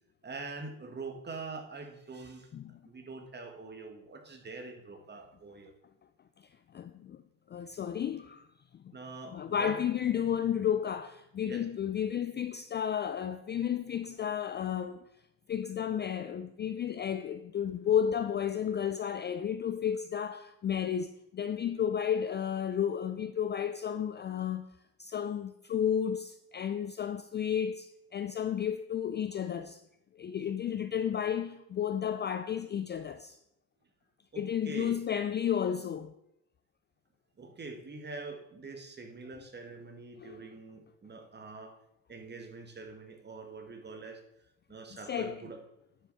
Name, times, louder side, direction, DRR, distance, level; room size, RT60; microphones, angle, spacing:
voice 1, 0.2-2.5 2.8-5.7 8.9-9.8 11.4-11.6 29.3-29.5 34.3-35.0 37.4-41.8 42.1-44.2 44.7-45.6, right 3 dB, 25° right, 1.7 m, -44 dB
voice 2, 6.7-7.2 7.5-8.5 9.3-15.0 15.5-24.7 25.0-29.8 30.2-33.4 34.4-36.1 40.2-40.4 45.1-45.4, left 9 dB, 25° left, 0.4 m, -32 dB
11.0 x 5.9 x 4.1 m
supercardioid pair, 85°, 41 cm